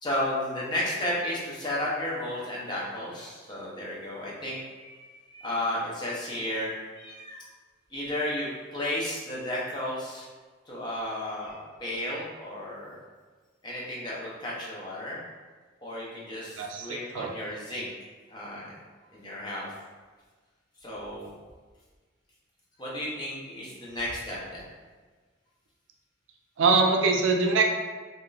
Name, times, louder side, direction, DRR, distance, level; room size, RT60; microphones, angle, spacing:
voice 1, 0.0-7.5 7.9-10.3 10.7-13.0 13.6-15.2 15.8-17.9 18.3-18.6 19.1-19.7 20.8-21.3 22.8-24.6, left 1 dB, 25° left, -6 dB, 0.7 m, -33 dB
voice 2, 16.6-17.3 26.6-27.6, right 4 dB, 85° right, 2 dB, 0.4 m, -23 dB
3.5 x 2.6 x 2.3 m, 1.4 s
head